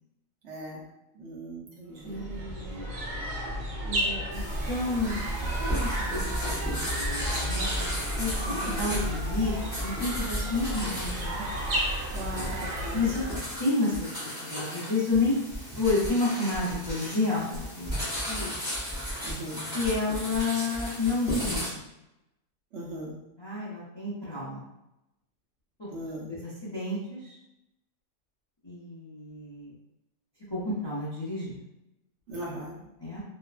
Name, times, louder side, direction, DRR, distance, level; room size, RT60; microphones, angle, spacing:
voice 1, 0.4-0.9 1.1-2.4 8.4-8.9 12.1-13.1 19.2-19.6 22.7-23.2 25.9-26.3 32.3-32.9, right 1 dB, 65° right, -4 dB, 0.9 m, -39 dB
voice 2, 2.0-2.9 3.8-4.4 4.7-5.3 5.7-7.9 8.2-9.5 9.8-11.4 12.9-13.2 13.6-14.1 14.4-15.4 15.8-18.5 19.7-21.8 23.4-24.7 25.8-25.9 26.3-27.3 28.6-29.7 30.5-31.6 33.0-33.2, left 3 dB, 30° left, -10 dB, 0.5 m, -30 dB
sound 1, 2.0-13.6, right 1 dB, 85° right, 1.2 m, -33 dB
sound 2, 4.3-21.7, equal, 5° right, 0.9 m, -34 dB
2.8 x 2.1 x 2.4 m, 0.88 s
omnidirectional pair, 1.4 m